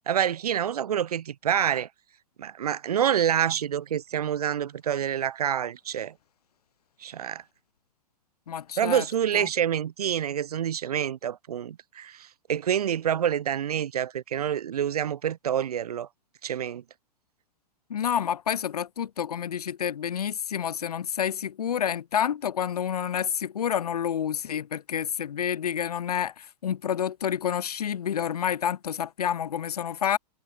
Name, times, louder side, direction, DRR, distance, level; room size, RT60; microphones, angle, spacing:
voice 1, 0.1-1.9 2.4-6.1 7.0-7.4 8.8-16.1 16.4-16.8, right 9 dB, 65° right, 1.5 m, -27 dB
voice 2, 8.5-9.0 9.3-9.5 17.9-30.2, left 9 dB, 65° left, 3.5 m, -29 dB
figure-of-eight pair, 105°, 21 cm